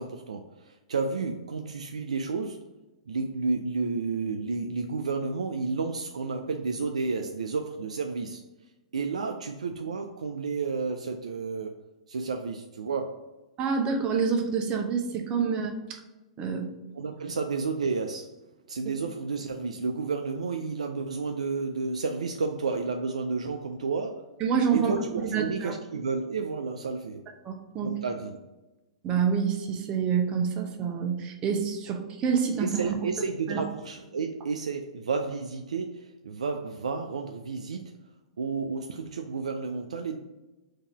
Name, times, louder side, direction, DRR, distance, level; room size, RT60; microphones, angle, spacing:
voice 1, 0.0-2.7 3.1-8.4 8.9-11.8 12.1-13.2 16.9-18.3 18.7-24.2 24.7-27.2 27.8-28.4 32.6-37.9 38.4-40.2, right 4 dB, 90° right, 4 dB, 0.3 m, -31 dB
voice 2, 13.6-16.0 16.4-16.7 24.4-25.7 27.4-27.9 29.0-33.0 33.5-33.6, right 6 dB, 30° right, 3 dB, 0.7 m, -27 dB
3.7 x 2.8 x 4.5 m, 1.1 s
hypercardioid pair, 120°, 3 cm